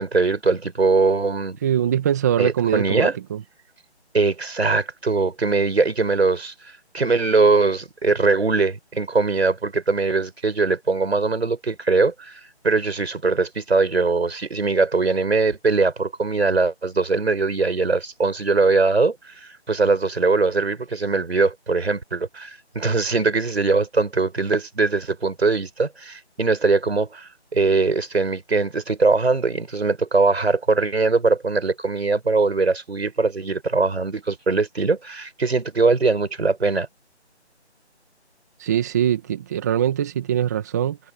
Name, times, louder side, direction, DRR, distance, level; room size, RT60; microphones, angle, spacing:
voice 1, 0.0-1.6 2.4-3.1 4.1-6.5 6.9-19.2 19.4-36.9, right 3 dB, 65° right, 6.0 m, -21 dB
voice 2, 1.6-3.4 38.6-41.0, right 10 dB, 15° right, 2.2 m, -22 dB
figure-of-eight pair, 170°, 34 cm